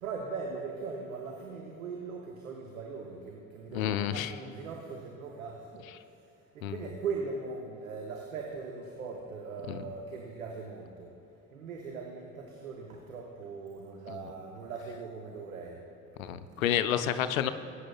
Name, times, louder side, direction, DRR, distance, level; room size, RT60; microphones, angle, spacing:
voice 1, 0.0-5.9 6.5-11.1 11.5-15.8, right 4 dB, 85° right, 1 dB, 0.9 m, -40 dB
voice 2, 3.7-4.3 6.6-6.8 9.7-9.8 14.1-14.2 16.2-17.5, left 10 dB, 80° left, 11 dB, 0.6 m, -30 dB
20.0 x 9.5 x 2.3 m, 2.7 s
figure-of-eight pair, 45°, 40 cm